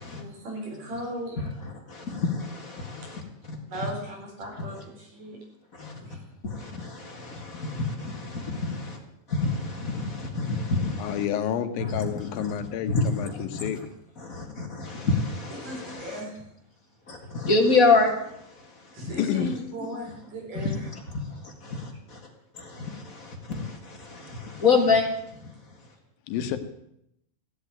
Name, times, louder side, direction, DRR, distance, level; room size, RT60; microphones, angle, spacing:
voice 1, 0.0-1.4 3.7-5.4 5.9-6.2 15.6-16.4 18.9-20.9, right 1 dB, 65° right, 0 dB, 5.8 m, -37 dB
voice 2, 2.1-2.7 3.1-3.2 7.3-8.8 9.4-11.2 11.8-12.5 12.9-13.7 14.3-16.2 17.1-18.1 20.5-20.7 23.5-23.6 24.6-25.0, left 3 dB, 30° left, 2 dB, 1.7 m, -25 dB
voice 3, 11.0-13.8 19.2-19.6 24.6-24.7 26.3-26.6, left 9 dB, 85° left, 9 dB, 2.9 m, -30 dB
15.5 x 8.2 x 9.1 m, 0.79 s
omnidirectional pair, 4.0 m